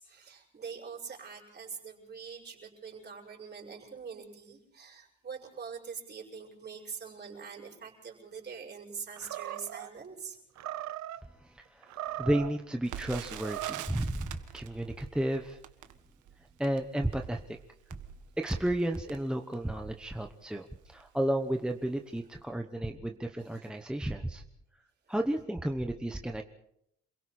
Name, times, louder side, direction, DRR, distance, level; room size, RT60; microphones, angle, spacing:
voice 1, 0.0-10.4 23.5-23.7 25.1-25.2, right 6 dB, 35° right, -1 dB, 6.1 m, -44 dB
Animal, 9.2-9.9 10.6-11.2 11.8-12.6 13.3-14.0, right 14 dB, 70° right, 0.9 m, -39 dB
voice 2, 11.4-15.6 16.6-17.6 18.4-24.4 25.1-26.4, right 1 dB, 5° right, 3 dB, 1.0 m, -32 dB
Crackle, 12.8-19.8 20.4-20.5 20.8-21.1 21.7-21.9 22.2-22.3, right 10 dB, 90° right, 1.7 m, -46 dB
28.5 x 22.5 x 4.3 m, 0.75 s
cardioid pair, 155°, 29 cm